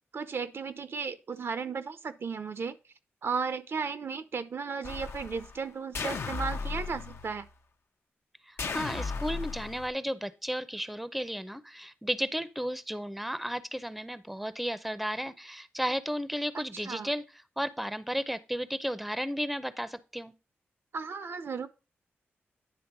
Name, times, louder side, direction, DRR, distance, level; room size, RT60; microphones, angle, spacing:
voice 1, 0.1-2.8 3.2-7.5 16.5-17.1 20.9-21.7, right 5 dB, 65° right, 0.7 m, -35 dB
sound 1, 4.8-5.6 5.9-7.5 8.6-9.9, left 4 dB, 70° left, 0.7 m, -36 dB
voice 2, 8.5-17.2 17.6-20.3, equal, ahead, 0.6 m, -34 dB
9.7 x 3.5 x 5.9 m
cardioid pair, 60°, 5 cm